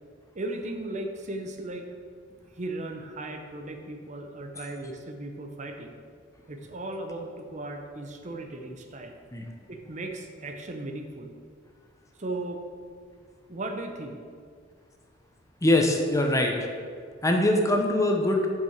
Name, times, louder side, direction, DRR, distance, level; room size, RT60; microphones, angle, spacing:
voice 1, 0.3-1.9 2.3-5.9 6.5-9.1 9.7-11.3 12.2-12.6 13.5-14.2, right 2 dB, 40° right, 4 dB, 0.7 m, -36 dB
voice 2, 15.6-16.6 17.2-18.5, left 1 dB, 15° left, 2 dB, 0.8 m, -22 dB
7.6 x 5.7 x 6.5 m, 2.1 s
head